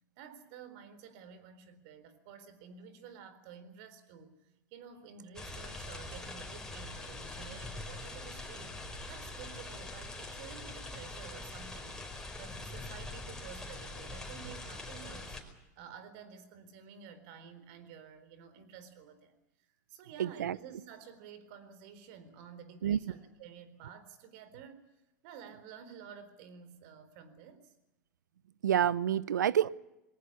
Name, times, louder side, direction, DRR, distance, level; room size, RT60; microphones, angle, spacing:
voice 1, 0.2-8.8 9.1-12.0 12.4-15.4 15.8-24.9 25.2-27.7, right 7 dB, 60° right, 12 dB, 4.0 m, -51 dB
sound 1, 5.4-15.4, left 2 dB, 5° left, 5.1 m, -43 dB
voice 2, 20.2-20.6 22.8-23.0 28.6-29.7, right 10 dB, 85° right, 21 dB, 0.8 m, -28 dB
21.5 x 18.5 x 9.8 m, 0.92 s
hypercardioid pair, 100°, 10 cm